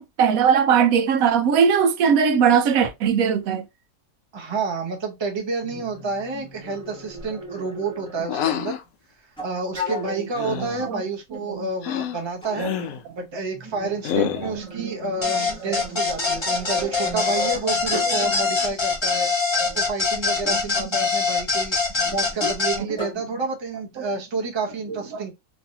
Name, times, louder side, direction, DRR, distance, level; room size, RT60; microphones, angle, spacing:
voice 1, 0.0-3.6 10.5-11.0 11.5-11.6 12.6-12.8 14.1-14.5 15.6-15.9 18.2-18.3 19.6-19.8 22.0-22.1 22.8-22.9 24.0-24.1 25.1-25.2, right 7 dB, 75° right, 1.0 m, -20 dB
voice 2, 4.3-8.8 9.4-12.7 13.2-19.3 19.6-21.8 22.1-25.3, right 3 dB, 25° right, 0.6 m, -29 dB
sound 1, 5.6-8.7 9.4-10.5 11.3-11.4 12.4-12.6 13.5-18.3 19.1-19.3 20.4-20.6 22.3-22.6 22.9-23.1, left 1 dB, 5° left, 1.0 m, -36 dB
sound 2, 8.3-8.8 10.3-10.9 11.8-12.2 12.5-13.0 14.0-14.6, left 9 dB, 75° left, 1.0 m, -27 dB
sound 3, 15.2-22.8, left 4 dB, 25° left, 0.7 m, -23 dB
3.1 x 2.6 x 2.7 m
omnidirectional pair, 1.5 m